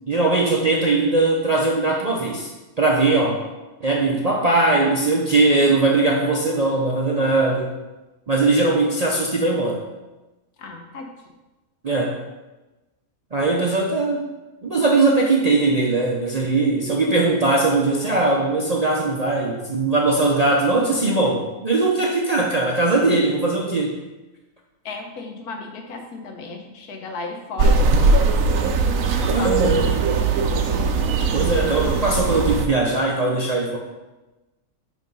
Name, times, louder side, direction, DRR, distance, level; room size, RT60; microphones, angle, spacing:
voice 1, 0.1-2.5 2.8-3.4 3.8-7.8 8.3-9.8 11.8-12.2 13.3-14.3 14.6-24.0 29.3-29.9 31.3-33.8, right 2 dB, 45° right, -2 dB, 0.5 m, -20 dB
voice 2, 10.6-11.1 24.8-28.3 29.2-30.0, left 3 dB, 85° left, 3 dB, 1.4 m, -35 dB
sound 1, 27.6-32.7, right 4 dB, 70° right, 1.0 m, -20 dB
7.0 x 3.4 x 5.3 m, 1.1 s
omnidirectional pair, 1.6 m